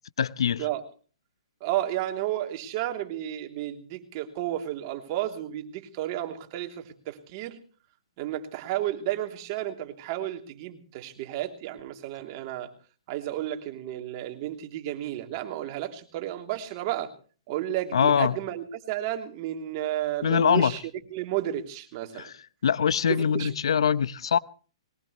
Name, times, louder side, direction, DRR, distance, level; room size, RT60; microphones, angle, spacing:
voice 1, 0.2-0.6 17.9-18.3 20.2-20.7 22.6-24.4, left 7 dB, 70° left, 0.8 m, -23 dB
voice 2, 1.6-7.6 8.2-12.7 13.1-17.1 17.5-20.8 21.1-22.3 23.1-23.5, right 13 dB, 40° right, 3.0 m, -32 dB
22.0 x 21.0 x 3.2 m
hypercardioid pair, 130°, 3 cm